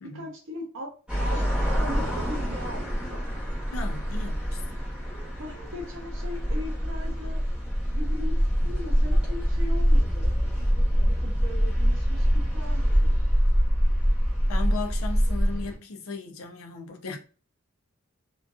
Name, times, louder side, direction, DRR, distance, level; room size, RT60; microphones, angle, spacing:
voice 1, 0.1-3.2 5.4-7.4 7.9-8.4 8.6-10.3 10.9-13.2, left 1 dB, 65° right, 0.7 m, -39 dB
sound 1, 1.1-15.7, equal, 5° right, 0.9 m, -25 dB
voice 2, 3.7-4.9 14.5-17.2, left 3 dB, 80° left, 0.5 m, -36 dB
2.5 x 2.2 x 2.3 m
head